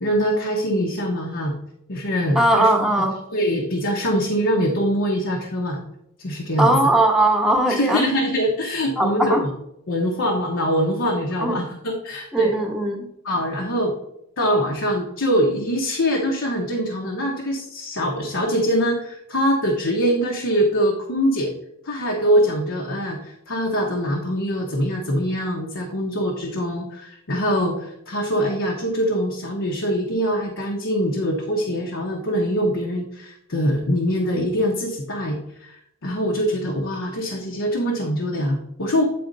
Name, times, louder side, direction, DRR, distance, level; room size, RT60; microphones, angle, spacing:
voice 1, 0.0-1.5 1.9-3.0 3.3-5.8 6.2-6.7 7.7-9.5 9.9-12.5 13.2-13.9 14.4-21.5 21.8-39.0, equal, 60° left, 0 dB, 1.0 m, -23 dB
voice 2, 2.3-3.2 6.6-8.1 9.0-9.4 11.4-11.6 12.3-13.0, right 1 dB, ahead, 2 dB, 1.0 m, -19 dB
8.6 x 4.3 x 3.9 m, 0.78 s
head